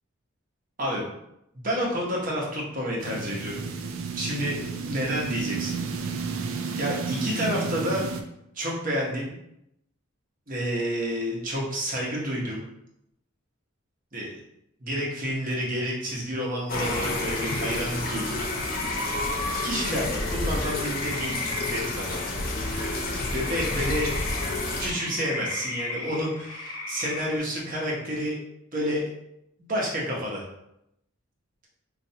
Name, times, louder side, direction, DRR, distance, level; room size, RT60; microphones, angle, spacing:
voice 1, 1.6-3.6 4.2-4.6 4.9-5.8 6.7-8.0 8.6-9.3 10.5-12.6 14.1-14.3 14.8-18.4 19.6-22.2 23.3-24.1 24.8-28.4 28.7-29.0 29.6-30.5, equal, 40° right, -3 dB, 0.9 m, -29 dB
sound 1, 3.0-8.2, right 5 dB, 70° right, 0.4 m, -32 dB
sound 2, 16.7-27.4, left 2 dB, 85° left, 0.9 m, -36 dB
sound 3, 16.7-24.9, left 2 dB, 40° left, 0.5 m, -30 dB
4.4 x 2.5 x 2.7 m, 0.81 s
head